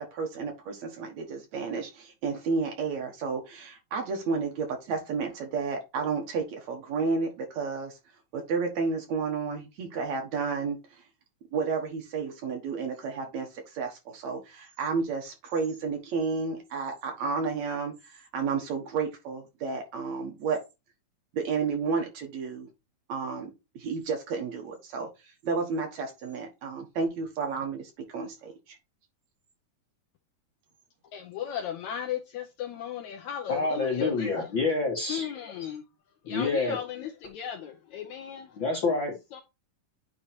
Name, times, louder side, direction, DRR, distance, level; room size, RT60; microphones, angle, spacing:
voice 1, 0.0-8.0 8.3-11.0 11.5-20.6 21.3-22.7 23.1-25.1 25.4-28.8, right 4 dB, 60° right, 2.4 m, -31 dB
voice 2, 31.1-34.5 35.1-35.8 36.3-38.6 39.3-39.4, left 10 dB, 80° left, 1.7 m, -36 dB
voice 3, 33.5-35.3 36.2-36.8 38.6-39.1, left 3 dB, 55° left, 1.4 m, -27 dB
9.2 x 3.1 x 4.3 m
omnidirectional pair, 3.9 m